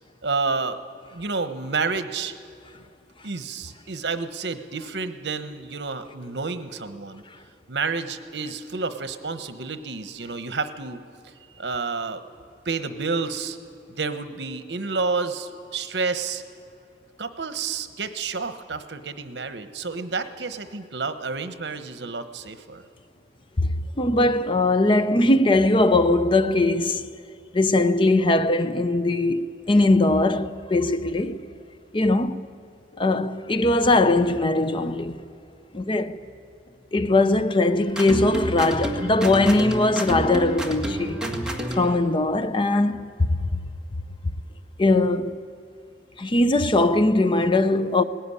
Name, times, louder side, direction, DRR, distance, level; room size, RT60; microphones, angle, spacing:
voice 1, 0.2-0.8 1.1-2.3 3.2-7.2 7.7-11.0 11.6-12.2 12.6-13.6 14.0-16.4 17.2-22.8, right 4 dB, 70° right, 1.1 m, -30 dB
voice 2, 24.0-27.1 27.5-31.4 31.9-32.4 33.0-35.2 35.7-36.2 36.9-41.2 41.7-43.5 44.8-45.4 46.2-48.0, left 2 dB, 30° left, 0.6 m, -20 dB
sound 1, 38.0-42.0, equal, 5° right, 1.9 m, -29 dB
18.5 x 16.5 x 9.8 m
head